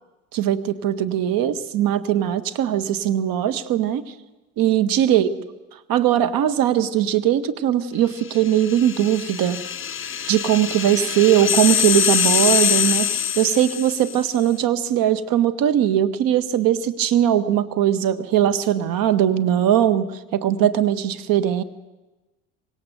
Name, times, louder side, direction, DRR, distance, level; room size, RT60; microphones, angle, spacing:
voice 1, 0.3-4.0 4.6-5.3 5.9-9.6 10.3-21.6, right 11 dB, 55° right, 13 dB, 1.4 m, -20 dB
sound 1, 8.3-14.3, left 9 dB, 30° left, 1.6 m, -23 dB
25.0 x 20.0 x 6.8 m, 1.1 s
figure-of-eight pair, 60°, 42 cm